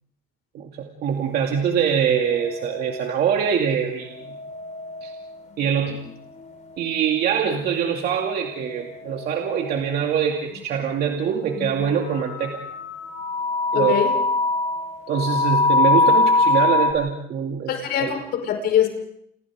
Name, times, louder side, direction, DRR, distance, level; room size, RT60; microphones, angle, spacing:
voice 1, 0.5-4.1 5.0-5.1 5.6-6.0 6.8-12.6 13.7-13.9 15.1-17.7 18.0-18.1, right 7 dB, 65° right, 2 dB, 2.6 m, -23 dB
sound 1, 2.2-3.5 4.0-5.7 6.1-7.2 8.2-10.0 10.6-10.7 11.5-11.8 12.1-16.9, left 3 dB, 45° left, 5.0 m, -24 dB
voice 2, 13.7-14.1 17.7-18.9, left 9 dB, 70° left, 5 dB, 5.4 m, -22 dB
29.5 x 29.0 x 3.8 m, 0.72 s
cardioid pair, 110°, 17 cm